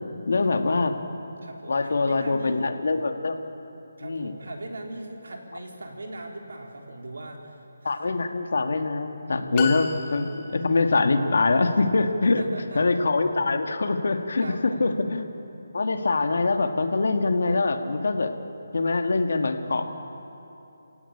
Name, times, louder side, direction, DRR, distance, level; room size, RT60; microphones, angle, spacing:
voice 1, 0.3-1.0 1.7-3.4 4.0-4.3 7.8-12.4 12.8-15.3 15.7-18.3 18.7-19.8, left 3 dB, 65° left, 6 dB, 2.0 m, -24 dB
voice 2, 1.4-2.6 4.0-7.6 7.8-8.2 9.3-9.7 10.1-10.2 12.2-12.8 14.4-14.9, right 1 dB, 75° right, 1 dB, 4.2 m, -39 dB
sound 1, 9.5-10.7, left 6 dB, 15° left, 1.3 m, -32 dB
28.5 x 17.0 x 8.7 m, 2.9 s
hypercardioid pair, 175°, 0 cm